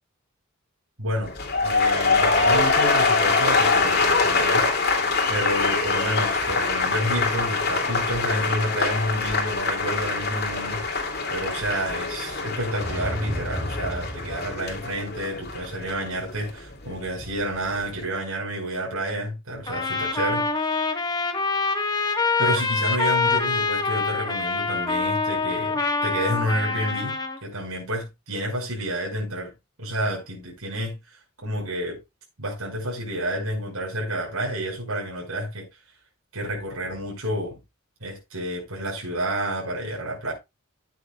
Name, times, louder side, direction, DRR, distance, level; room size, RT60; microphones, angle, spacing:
voice 1, 1.0-1.3 1.6-4.7 5.3-20.5 22.4-29.5 29.8-32.0 32.4-35.6 36.3-37.6 38.0-40.3, right 1 dB, 90° right, 5.6 m, -30 dB
sound 1, 1.2-17.3 17.6-18.0, left 4 dB, 50° left, 2.5 m, -24 dB
sound 2, 12.7-14.9, equal, 10° right, 2.9 m, -33 dB
Trumpet, 19.7-27.4, left 4 dB, 20° left, 1.4 m, -25 dB
14.0 x 9.3 x 2.3 m
head